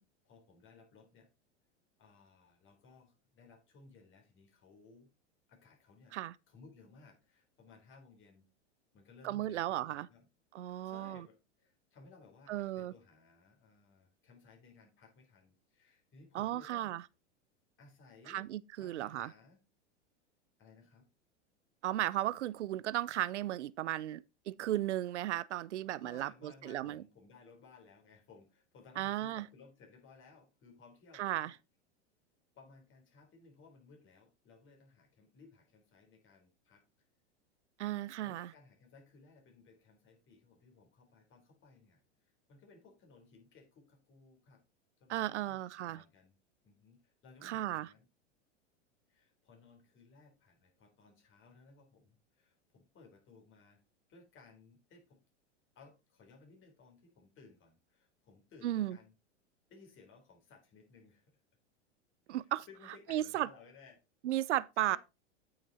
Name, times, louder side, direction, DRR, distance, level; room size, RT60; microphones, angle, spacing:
voice 1, 0.2-1.3 2.0-5.1 5.5-6.2 6.5-8.5 8.9-10.3 10.8-16.9 17.8-18.5 18.8-19.6 20.6-21.1 26.0-31.6 32.6-36.8 38.2-44.6 45.0-46.4 46.6-48.1 49.1-53.8 54.1-55.2 55.8-59.1 59.7-61.3 62.3-64.0 64.8-65.0, left 4 dB, 35° left, 4.0 m, -60 dB
voice 2, 9.2-10.1 10.5-11.2 12.5-12.9 16.3-17.0 18.3-19.3 21.8-27.0 29.0-29.4 31.2-31.5 37.8-38.5 45.1-46.0 47.4-47.9 58.6-59.0 62.3-62.7 63.1-63.5 64.2-65.0, right 13 dB, 80° right, 0.6 m, -35 dB
8.8 x 6.5 x 4.1 m
hypercardioid pair, 105°, 34 cm